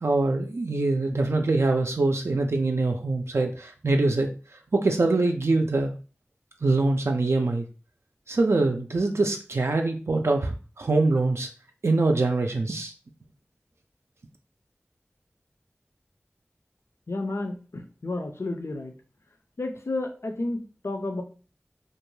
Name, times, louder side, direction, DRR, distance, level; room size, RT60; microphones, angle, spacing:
voice 1, 0.0-4.3 4.7-5.9 6.6-7.6 8.3-11.5 11.8-12.9, right 2 dB, 75° right, 3 dB, 0.3 m, -24 dB
voice 2, 17.1-18.9 19.6-21.2, left 2 dB, 75° left, 5 dB, 0.4 m, -31 dB
2.5 x 2.2 x 3.0 m, 0.36 s
wide cardioid pair, 40°, 5 cm